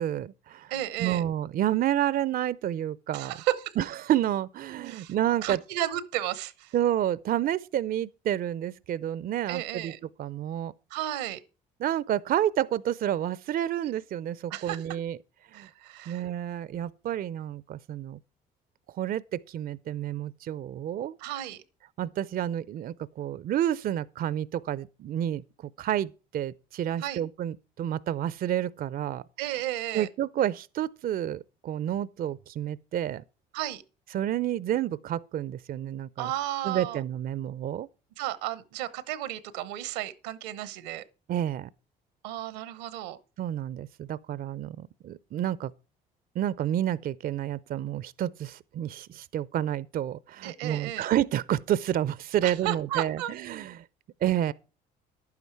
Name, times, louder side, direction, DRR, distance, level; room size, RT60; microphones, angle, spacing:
voice 1, 0.0-0.7 1.0-3.3 3.8-5.6 6.7-9.9 10.2-10.7 11.8-15.2 15.5-15.7 16.1-18.2 18.9-21.2 22.0-29.2 29.9-33.2 34.1-36.3 36.6-37.9 41.3-41.7 43.4-45.7 46.4-53.8 54.2-54.5, right 11 dB, 50° right, 0.5 m, -29 dB
voice 2, 0.7-1.2 3.1-3.7 4.9-5.1 5.4-6.7 9.5-10.0 10.9-11.4 14.5-14.8 15.5-16.3 21.2-21.6 27.0-27.2 29.4-30.1 33.5-33.8 36.2-37.0 38.2-41.0 42.2-43.2 50.4-51.1 52.4-53.3, right 13 dB, 85° right, 0.9 m, -33 dB
11.0 x 9.5 x 4.6 m
hypercardioid pair, 65°, 20 cm